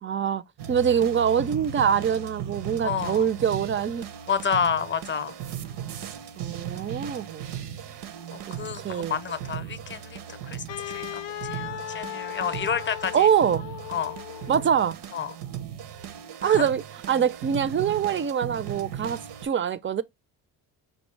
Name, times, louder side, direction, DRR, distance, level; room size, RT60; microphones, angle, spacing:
voice 1, 0.0-0.4 0.7-4.1 6.4-7.5 8.5-9.2 13.1-13.6 14.5-15.0 16.4-20.0, right 8 dB, 30° right, 0.5 m, -24 dB
sound 1, 0.6-19.5, right 9 dB, 70° right, 0.8 m, -37 dB
voice 2, 2.8-3.3 4.3-5.4 6.8-6.9 8.3-11.1 11.5-13.3 13.9-14.2 15.1-15.4 16.4-16.7, left 7 dB, 25° left, 0.6 m, -30 dB
Wind instrument woodwind instrument, 10.7-14.7, left 12 dB, 85° left, 0.6 m, -37 dB
5.3 x 2.7 x 3.1 m
cardioid pair, 75°, 42 cm